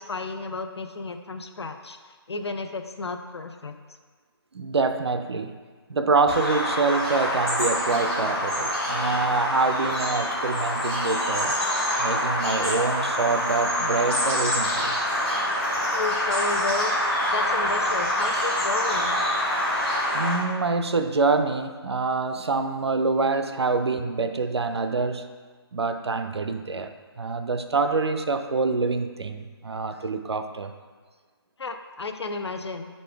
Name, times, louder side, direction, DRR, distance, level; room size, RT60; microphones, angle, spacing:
voice 1, 0.0-2.0 2.3-3.7 15.9-19.2 31.6-32.9, left 3 dB, 85° left, 7 dB, 0.7 m, -32 dB
voice 2, 4.5-5.6 5.9-11.6 12.0-15.0 20.1-25.3 25.7-30.7, right 4 dB, 90° right, 9 dB, 0.5 m, -26 dB
Bird vocalization bird call bird song, 6.3-20.3, left 1 dB, 5° left, 1.6 m, -26 dB
7.5 x 4.2 x 3.4 m, 1.5 s
figure-of-eight pair, 155°, 13 cm